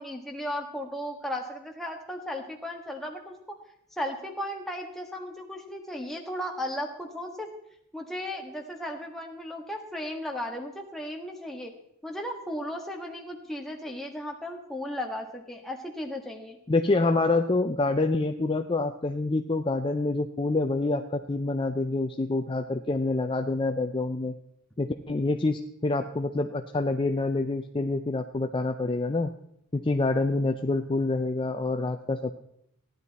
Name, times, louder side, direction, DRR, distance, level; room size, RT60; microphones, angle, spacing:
voice 1, 0.0-3.3 4.0-7.5 7.9-11.7 12.0-16.6, left 1 dB, ahead, 0 dB, 1.5 m, -35 dB
voice 2, 16.7-24.3 24.8-29.3 29.7-32.3, left 2 dB, 25° left, 6 dB, 0.5 m, -27 dB
16.0 x 10.5 x 4.1 m, 0.75 s
head